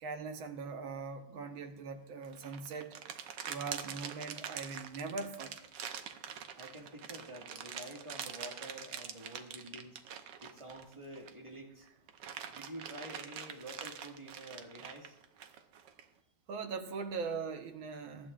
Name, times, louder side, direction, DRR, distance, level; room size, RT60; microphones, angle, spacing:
voice 1, 0.0-3.0 3.5-5.5 5.8-5.9 16.5-18.3, right 4 dB, 85° right, 1.9 m, -41 dB
sound 1, 2.2-11.5 11.9-16.0, right 8 dB, 70° right, 1.4 m, -45 dB
voice 2, 6.6-10.0 10.4-11.9 12.5-15.2, right 1 dB, 15° right, 1.8 m, -48 dB
22.0 x 10.5 x 2.5 m
omnidirectional pair, 2.1 m